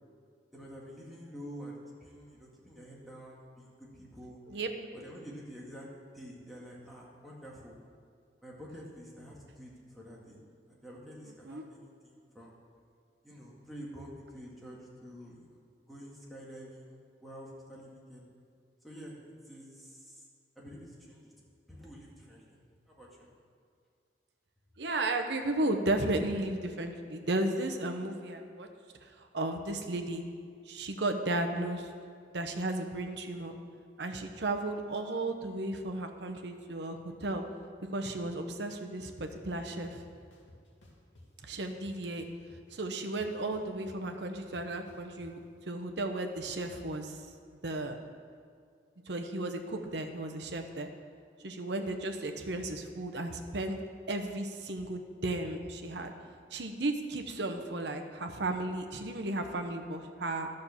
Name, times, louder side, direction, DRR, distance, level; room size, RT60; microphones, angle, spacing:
voice 1, 0.5-4.4 4.9-7.7 8.4-10.4 10.7-12.5 13.2-15.6 15.9-18.2 18.8-19.2 19.4-20.3 20.6-21.3 21.7-23.3, equal, ahead, -5 dB, 1.9 m, -48 dB
voice 2, 11.2-11.7 24.8-28.7 29.0-30.2 30.7-31.9 32.3-33.6 34.0-37.4 37.9-40.0 41.4-42.3 42.7-45.4 45.7-47.2 47.6-47.9 49.1-50.9 51.4-53.8 54.1-56.1 56.5-60.5, right 2 dB, 65° right, 5 dB, 1.0 m, -34 dB
sound 1, 39.8-39.9 40.3-41.3 41.7-42.7 43.0-45.3, left 1 dB, 90° left, 2.1 m, -56 dB
11.5 x 6.5 x 7.1 m, 2.2 s
head